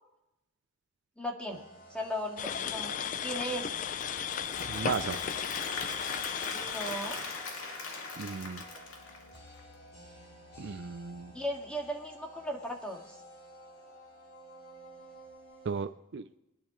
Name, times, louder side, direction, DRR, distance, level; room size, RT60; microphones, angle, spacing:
voice 1, 1.2-2.9 3.2-3.8 6.5-7.2 11.3-13.1, equal, 5° left, 0 dB, 1.9 m, -37 dB
sound 1, 1.5-3.8 4.5-15.8, equal, 55° left, 5.2 m, -53 dB
sound 2, 2.4-7.5, left 8 dB, 35° left, 0.4 m, -35 dB
Applause / Crowd, 3.7-9.7, left 3 dB, 80° left, 2.4 m, -41 dB
voice 2, 4.7-5.2 8.2-8.6 10.6-11.3 15.6-16.3, right 5 dB, 55° right, 11 dB, 0.5 m, -35 dB
25.0 x 10.0 x 3.1 m, 0.93 s
head